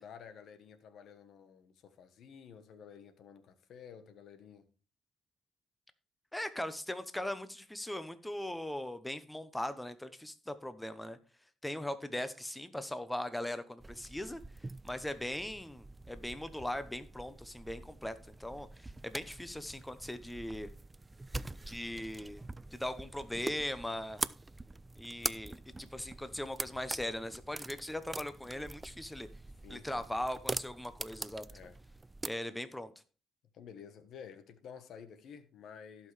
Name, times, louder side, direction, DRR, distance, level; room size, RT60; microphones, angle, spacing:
voice 1, 0.0-4.7 29.6-30.1 31.5-31.8 33.5-36.1, left 7 dB, 70° left, 1.2 m, -52 dB
voice 2, 6.3-11.2 11.6-14.4 14.8-18.1 18.4-20.7 21.7-22.4 22.7-24.2 25.0-29.3 29.7-31.5 32.2-32.9, left 1 dB, 10° left, 0.8 m, -39 dB
sound 1, 13.8-32.3, right 2 dB, 20° right, 0.4 m, -44 dB
16.5 x 5.6 x 3.3 m
cardioid pair, 90°, 0 cm